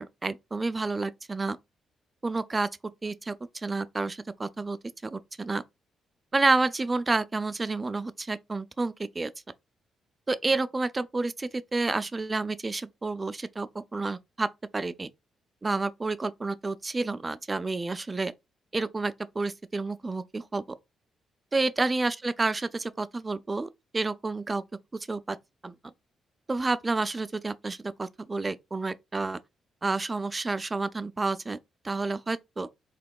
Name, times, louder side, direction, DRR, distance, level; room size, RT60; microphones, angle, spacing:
voice 1, 0.0-1.6 2.2-2.7 3.0-4.8 5.0-5.6 6.3-9.3 10.3-14.5 14.7-15.1 15.6-18.3 18.7-20.6 21.5-24.6 24.9-25.4 25.6-25.7 26.5-29.4 29.8-31.6 31.8-32.7, right 3 dB, 25° right, 0.3 m, -29 dB
3.4 x 2.9 x 2.2 m
cardioid pair, 75°, 0 cm